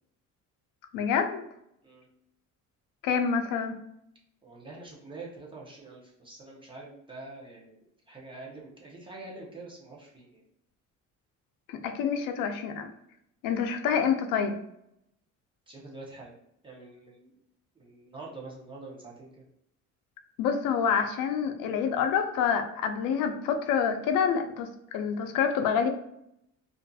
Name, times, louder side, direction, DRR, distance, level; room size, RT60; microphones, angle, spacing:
voice 1, 0.9-1.4 3.0-3.7 11.7-12.9 13.4-14.6 20.4-24.7 24.9-25.9, left 7 dB, 85° left, 6 dB, 0.5 m, -27 dB
voice 2, 4.4-10.4 15.7-16.4 16.6-17.3 17.7-19.4, right 3 dB, 15° right, -3 dB, 0.6 m, -45 dB
2.6 x 2.4 x 2.3 m, 0.77 s
cardioid pair, 135°, 32 cm